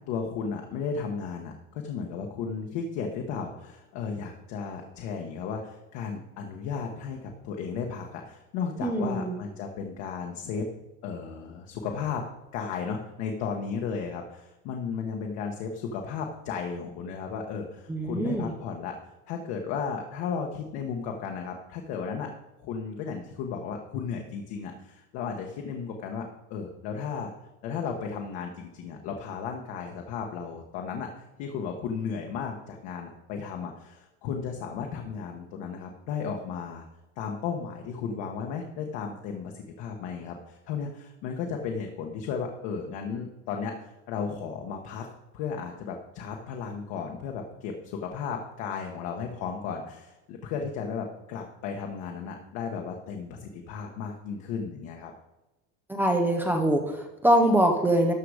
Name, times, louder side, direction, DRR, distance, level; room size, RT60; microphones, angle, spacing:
voice 1, 0.1-10.7 11.0-12.2 12.5-18.9 19.3-22.3 22.6-26.2 26.5-27.3 27.6-36.8 37.2-45.1 45.3-55.1, left 6 dB, 45° left, 2 dB, 1.2 m, -34 dB
voice 2, 8.8-9.4 17.9-18.5 55.9-58.1, right 1 dB, 5° right, 3 dB, 0.5 m, -23 dB
12.5 x 6.8 x 4.9 m, 0.99 s
cardioid pair, 175°, 36 cm